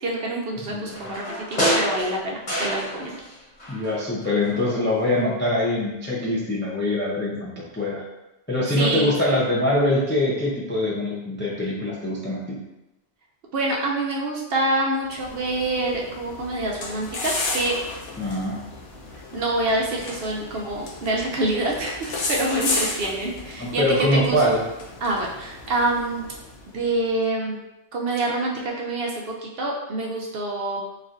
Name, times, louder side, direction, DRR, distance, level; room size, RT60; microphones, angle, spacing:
voice 1, 0.0-3.2 8.7-9.4 13.5-17.8 19.3-24.4 25.0-26.2 26.7-27.6 27.9-30.8, right 2 dB, 65° right, -2 dB, 0.7 m, -26 dB
voice 2, 0.6-1.0 3.7-8.0 8.5-12.6 18.2-18.6 23.6-24.6, left 1 dB, 20° left, -6 dB, 0.3 m, -23 dB
sound 1, 0.9-3.3 3.6-4.7 5.0-5.1, equal, 40° left, 1.2 m, -27 dB
sound 2, 15.1-26.8, left 3 dB, 85° left, 1.0 m, -33 dB
4.1 x 2.4 x 2.5 m, 0.96 s
omnidirectional pair, 1.2 m